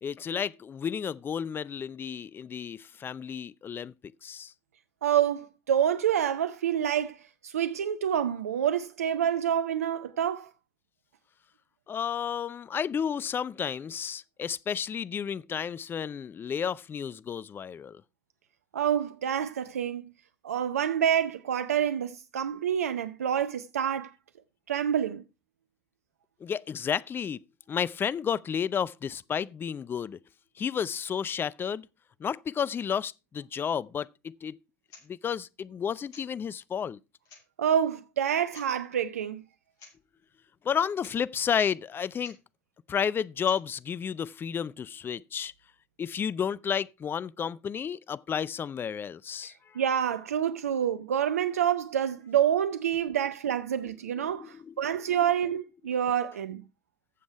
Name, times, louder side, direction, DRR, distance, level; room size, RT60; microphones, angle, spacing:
voice 1, 0.0-3.9 4.2-4.5 11.9-18.0 26.4-27.4 27.7-30.2 30.6-31.9 32.2-34.6 35.1-37.0 40.6-42.4 42.9-45.5 46.0-49.8 54.2-54.7, left 7 dB, 30° left, 0.5 m, -32 dB
voice 2, 5.0-10.5 18.7-20.1 20.4-24.1 24.7-25.2 37.6-39.4 49.7-56.6, right 9 dB, 80° right, 0.6 m, -27 dB
sound 1, 34.9-35.1 36.1-36.3 36.9-37.0 37.2-37.8 38.5-38.7 39.7-40.0 40.2-40.3 40.7-40.8 41.0-41.2 42.2-42.4 43.4-43.6, left 5 dB, 55° left, 7.3 m, -52 dB
15.0 x 7.3 x 4.6 m
hypercardioid pair, 75°, 8 cm